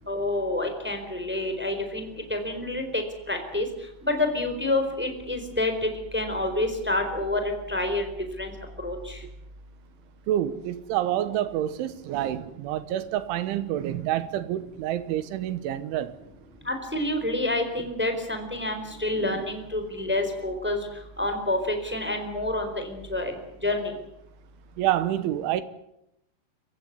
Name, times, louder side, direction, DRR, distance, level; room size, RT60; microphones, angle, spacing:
voice 1, 0.1-3.6 4.0-7.4 7.7-8.0 8.4-8.5 8.8-9.2 16.6-20.9 21.2-23.3 23.6-23.9, left 2 dB, ahead, 3.3 m, -28 dB
voice 2, 10.3-16.2 19.2-19.5 24.8-25.6, right 12 dB, 75° right, 3.4 m, -28 dB
27.5 x 15.5 x 9.6 m
omnidirectional pair, 5.8 m